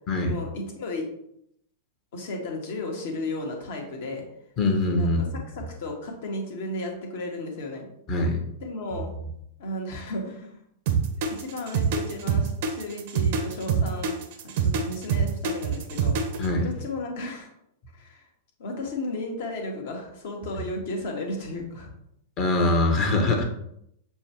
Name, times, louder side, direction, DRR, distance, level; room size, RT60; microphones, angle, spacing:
voice 1, 0.2-1.1 2.1-4.2 5.0-5.3 5.5-7.9 8.6-9.1 9.6-10.6 11.3-14.1 14.4-16.2 16.6-17.5 17.9-18.3 18.6-21.9, left 2 dB, 60° left, 1 dB, 1.2 m, -34 dB
voice 2, 4.6-5.4 8.1-8.4 16.4-16.7 22.4-23.4, left 2 dB, 40° left, 2 dB, 1.0 m, -23 dB
sound 1, 10.9-16.5, right 6 dB, 55° right, 0.7 m, -25 dB
6.8 x 2.3 x 2.9 m, 0.74 s
figure-of-eight pair, 95°, 0 cm